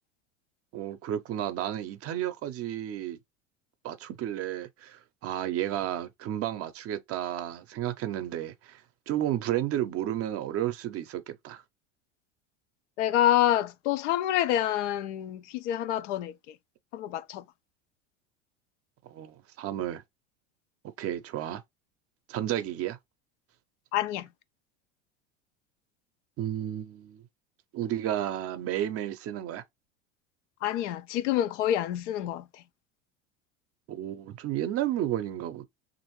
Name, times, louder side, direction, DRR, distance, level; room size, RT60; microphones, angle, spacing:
voice 1, 0.7-3.2 3.8-11.6 19.1-20.0 21.0-21.6 22.3-23.0 26.4-27.2 27.7-29.6 33.9-35.6, right 12 dB, 40° right, 0.6 m, -32 dB
voice 2, 13.0-16.3 16.9-17.4 23.9-24.3 30.6-32.4, left 12 dB, 80° left, 0.5 m, -27 dB
3.0 x 2.6 x 2.9 m
hypercardioid pair, 90°, 36 cm